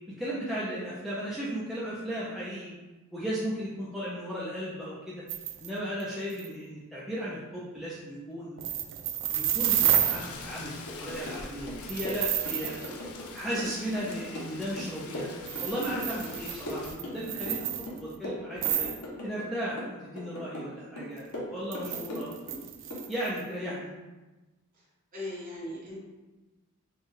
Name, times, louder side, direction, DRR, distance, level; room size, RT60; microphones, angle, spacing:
voice 1, 0.2-2.7 3.1-5.2 5.6-8.7 9.3-12.8 13.3-15.3 15.6-17.7 18.0-18.9 19.2-22.4 23.1-23.9, equal, ahead, -8 dB, 0.5 m, -35 dB
sound 1, 5.3-5.7 6.0-6.1 6.3-6.5 8.6-10.3 11.9-12.9 13.4-13.5 15.4-18.1 18.6-19.0 21.7-23.4, right 11 dB, 55° right, 0.3 m, -30 dB
Rain, 9.6-16.9, left 4 dB, 70° left, 0.4 m, -45 dB
sound 2, 10.9-11.4 11.7-13.3 13.6-16.4 16.7-17.6 17.9-19.5 19.8-20.7 21.0-22.6 22.9-23.1, left 1 dB, 90° left, 0.9 m, -39 dB
voice 2, 25.1-26.0, left 1 dB, 40° right, -8 dB, 1.5 m, -38 dB
4.4 x 2.3 x 3.2 m, 1.2 s
head